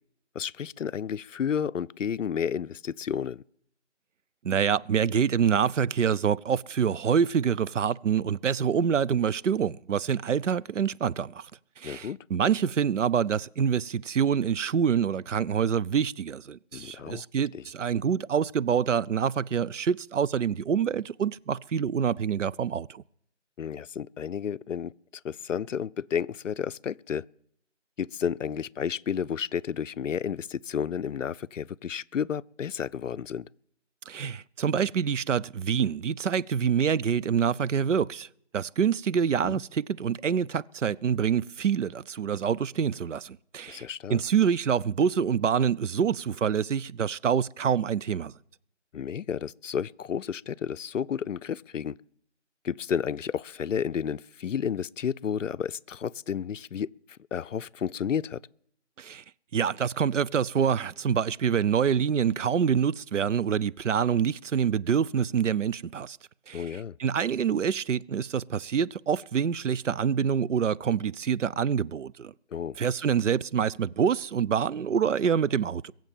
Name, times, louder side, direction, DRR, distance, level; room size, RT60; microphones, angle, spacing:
voice 1, 0.4-3.4 11.8-12.2 16.7-17.2 17.5-17.6 23.6-24.9 25.2-27.2 28.0-33.5 39.4-39.6 43.7-44.2 48.9-52.0 52.6-56.9 57.3-58.4 66.5-67.0 72.5-72.8, left 8 dB, 85° left, 0.5 m, -31 dB
voice 2, 4.4-11.4 11.8-23.0 34.1-38.3 38.5-43.8 44.1-48.3 59.0-59.2 59.5-66.2 66.5-66.6 67.0-72.3 72.8-75.9, right 7 dB, 75° right, 0.5 m, -26 dB
22.0 x 7.5 x 7.3 m
figure-of-eight pair, 175°, 37 cm